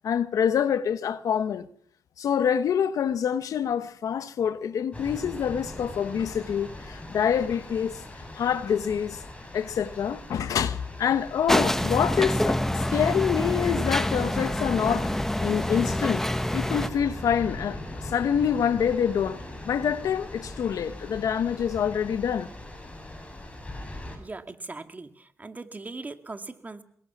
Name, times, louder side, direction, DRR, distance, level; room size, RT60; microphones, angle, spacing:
voice 1, 0.0-1.7 2.2-8.0 8.3-9.2 9.5-15.1 15.4-16.2 16.5-17.8 18.0-22.5, left 8 dB, 85° left, 1.2 m, -26 dB
sound 1, 4.9-24.2, left 1 dB, 20° left, 7.8 m, -40 dB
sound 2, 11.5-16.9, left 1 dB, 5° left, 1.1 m, -26 dB
voice 2, 24.2-26.8, right 3 dB, 30° right, 2.2 m, -40 dB
24.5 x 21.5 x 6.1 m
cardioid pair, 80°, 6 cm